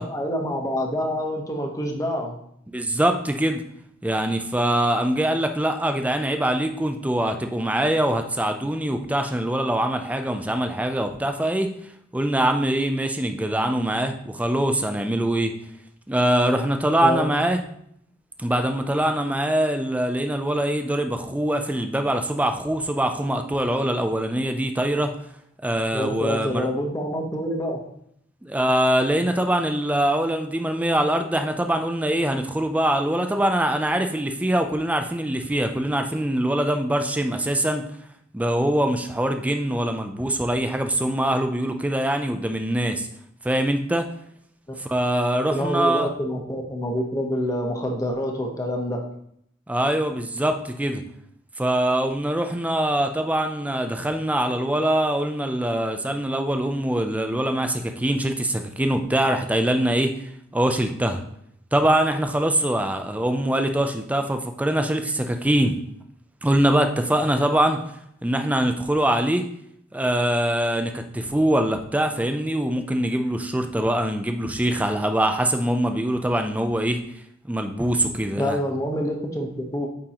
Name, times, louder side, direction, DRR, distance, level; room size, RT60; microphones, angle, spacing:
voice 1, 0.0-2.4 17.0-17.3 25.9-27.8 45.5-49.0 78.4-79.9, equal, 15° left, 1 dB, 0.9 m, -27 dB
voice 2, 2.7-3.6 4.0-11.7 12.1-15.5 16.1-17.6 18.4-25.1 25.6-26.7 28.4-37.9 38.3-43.1 43.4-44.1 44.8-46.1 49.7-51.0 51.6-60.1 60.5-61.2 61.7-65.8 66.4-67.8 68.2-69.5 69.9-77.0 77.5-78.6, right 1 dB, 5° right, 6 dB, 0.4 m, -23 dB
8.7 x 3.7 x 2.9 m, 0.70 s
head